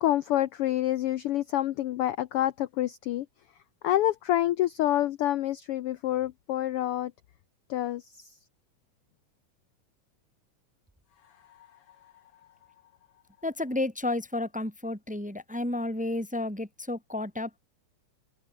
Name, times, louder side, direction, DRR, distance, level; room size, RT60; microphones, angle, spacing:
voice 1, 0.0-3.2 3.8-7.1 7.7-8.0, left 13 dB, 75° left, 1.3 m, -27 dB
voice 2, 13.4-17.6, left 2 dB, 5° right, 1.5 m, -31 dB
omnidirectional pair, 3.3 m